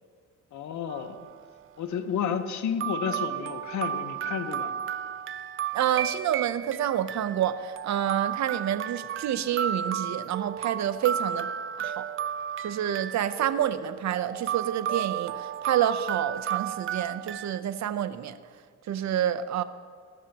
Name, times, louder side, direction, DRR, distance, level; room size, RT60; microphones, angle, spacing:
voice 1, 0.5-1.2 1.8-4.7, left 7 dB, 70° left, 9 dB, 1.2 m, -31 dB
sound 1, 0.9-1.4 2.3-2.4 2.8-17.6, right 9 dB, 45° right, 0.4 m, -33 dB
voice 2, 5.7-11.5 11.8-12.1 12.6-18.4 18.9-19.6, right 10 dB, 65° right, 12 dB, 0.8 m, -28 dB
19.0 x 13.5 x 3.0 m, 2.1 s
cardioid pair, 90°, 30 cm